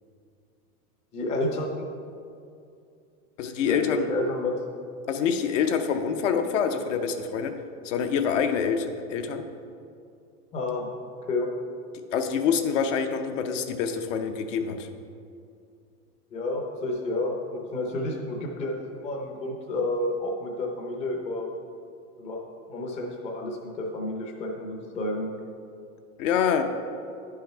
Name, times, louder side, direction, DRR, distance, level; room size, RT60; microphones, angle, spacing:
voice 1, 1.1-1.8 3.6-4.6 10.5-10.9 11.3-11.5 16.3-21.5 22.2-22.4 22.7-25.3, left 2 dB, 15° left, 0 dB, 0.6 m, -30 dB
voice 2, 3.4-4.1 5.1-7.5 7.8-9.4 12.1-14.9 26.2-26.6, left 7 dB, 55° left, 6 dB, 0.7 m, -26 dB
10.0 x 5.7 x 4.4 m, 2.5 s
supercardioid pair, 155°, 45 cm